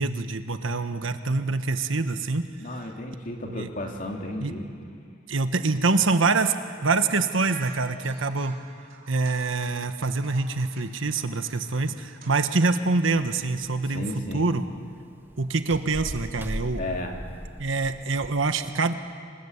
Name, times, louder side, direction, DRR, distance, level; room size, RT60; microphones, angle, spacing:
voice 1, 0.0-2.5 3.4-3.7 4.4-4.5 5.3-6.5 6.8-8.6 9.1-14.1 14.3-14.6 15.4-16.8 17.6-18.9, right 3 dB, 80° right, 9 dB, 1.4 m, -25 dB
voice 2, 2.6-4.7 13.9-14.5 16.8-17.2, left 1 dB, 45° left, 1 dB, 2.9 m, -33 dB
sound 1, 7.0-12.3, right 4 dB, 50° right, 4.5 m, -48 dB
sound 2, 13.1-18.4, equal, 10° right, 1.3 m, -39 dB
27.5 x 19.5 x 8.2 m, 2.1 s
head